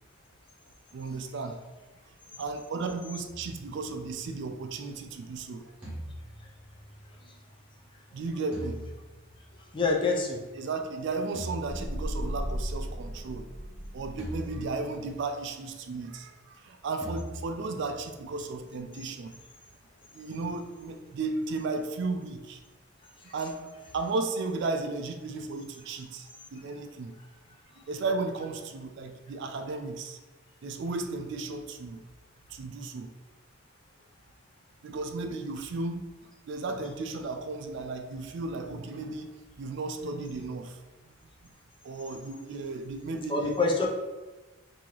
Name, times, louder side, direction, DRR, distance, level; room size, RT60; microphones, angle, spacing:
voice 1, 0.9-1.6 2.4-5.7 8.1-8.8 10.6-19.4 20.1-22.6 23.3-23.7 23.9-27.1 27.8-30.2 30.6-32.0 32.5-33.1 34.8-36.0 36.5-39.3 39.6-40.8 41.0-41.1 41.4-41.5 41.8-43.5, right 3 dB, 60° right, 6 dB, 0.3 m, -34 dB
sound 1, 3.3-4.6 5.8-7.5 8.5-9.9 11.3-12.7 14.2-15.4 17.0-18.4, right 1 dB, 5° right, 1.3 m, -43 dB
voice 2, 9.6-10.4 23.2-23.3 43.3-43.9, left 3 dB, 25° left, -1 dB, 0.4 m, -27 dB
sound 2, 11.7-14.8, equal, 60° left, 1.4 m, -36 dB
3.0 x 2.7 x 3.8 m, 1.2 s
head